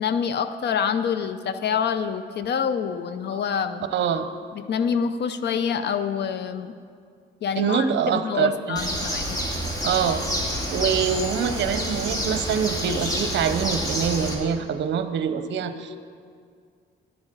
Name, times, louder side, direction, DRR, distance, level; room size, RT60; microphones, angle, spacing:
voice 1, 0.0-3.8 4.5-6.7 7.4-9.4, left 7 dB, 60° left, 11 dB, 0.6 m, -26 dB
voice 2, 3.9-4.3 7.6-8.9 9.8-10.2 10.7-16.0, right 7 dB, 65° right, 10 dB, 0.7 m, -25 dB
Bird, 8.8-14.3, equal, 20° left, 2.4 m, -28 dB
11.0 x 7.1 x 6.7 m, 2.2 s
cardioid pair, 90°, 20 cm